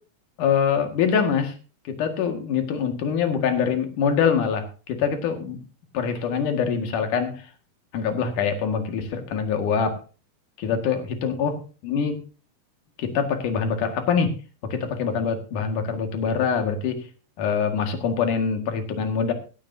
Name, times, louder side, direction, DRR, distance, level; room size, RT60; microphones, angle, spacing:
voice 1, 0.4-1.6 1.8-5.6 5.9-7.5 7.9-10.0 10.6-12.2 13.0-14.3 14.6-17.1 17.4-19.3, left 6 dB, 60° left, 6 dB, 3.3 m, -24 dB
16.0 x 13.0 x 2.8 m, 0.34 s
omnidirectional pair, 4.4 m